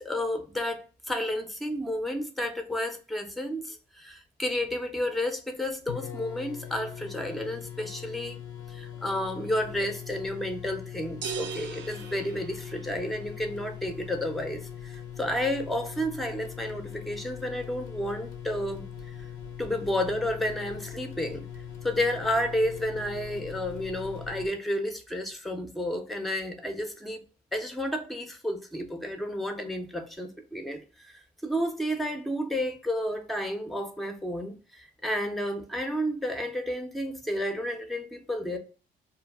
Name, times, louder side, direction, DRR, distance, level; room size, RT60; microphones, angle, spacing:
voice 1, 0.0-8.4 8.7-18.9 19.6-21.5 21.8-27.2 27.5-31.1 31.4-38.6, left 1 dB, ahead, 0.5 m, -31 dB
sound 1, 5.6-5.7 5.9-24.5, left 9 dB, 85° left, 0.5 m, -41 dB
sound 2, 11.2-13.3, right 7 dB, 65° right, 0.5 m, -38 dB
2.2 x 2.1 x 3.3 m
cardioid pair, 90°, 20 cm